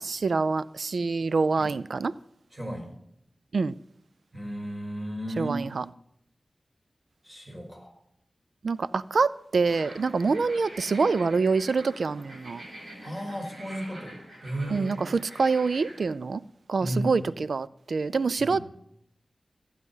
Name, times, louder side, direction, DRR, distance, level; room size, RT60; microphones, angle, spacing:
voice 1, 0.0-2.1 3.5-3.7 5.4-5.8 8.6-12.6 14.7-15.1 15.4-16.4 16.7-17.2 17.5-18.6, right 4 dB, 80° right, 0.4 m, -26 dB
voice 2, 2.5-2.9 4.3-5.7 7.2-7.9 10.3-10.4 13.0-14.9 16.8-17.2 18.4-18.6, right 1 dB, 10° right, 5.1 m, -34 dB
sound 1, 9.7-16.1, right 1 dB, 65° right, 6.7 m, -45 dB
15.0 x 9.5 x 5.6 m
wide cardioid pair, 90°, 0 cm